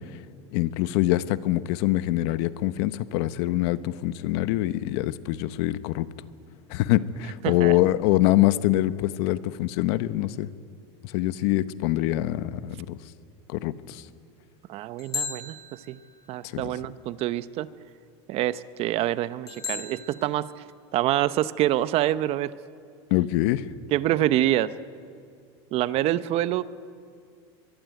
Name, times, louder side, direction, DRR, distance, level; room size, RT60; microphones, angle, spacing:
voice 1, 0.5-6.1 6.7-10.5 11.0-13.0 13.5-14.0 16.4-16.7 23.1-23.6, left 15 dB, 65° left, 14 dB, 1.0 m, -24 dB
voice 2, 7.4-7.8 14.7-16.0 16.3-17.7 18.3-20.5 20.9-22.5 23.9-24.7 25.7-26.6, right 13 dB, 45° right, 15 dB, 0.8 m, -26 dB
sound 1, 15.0-16.3 19.5-20.2, left 6 dB, 25° left, 3.3 m, -35 dB
23.0 x 23.0 x 9.3 m, 2.4 s
supercardioid pair, 140°, 15 cm